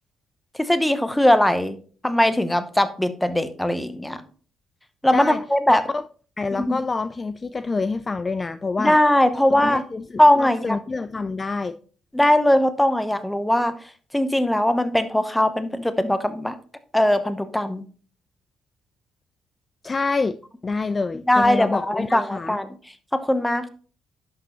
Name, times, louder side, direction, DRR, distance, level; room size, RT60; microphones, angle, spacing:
voice 1, 0.6-1.8 2.0-4.2 5.0-5.8 6.5-6.8 8.8-9.8 10.2-10.8 12.1-13.7 14.1-16.5 16.9-17.8 21.3-22.7 23.1-23.7, left 1 dB, 5° left, 0.9 m, -20 dB
voice 2, 5.1-5.4 5.7-6.0 6.4-9.0 9.5-11.7 19.8-20.4 20.6-22.6, left 4 dB, 30° left, 0.3 m, -27 dB
10.5 x 6.1 x 3.0 m
cardioid pair, 90°, 0 cm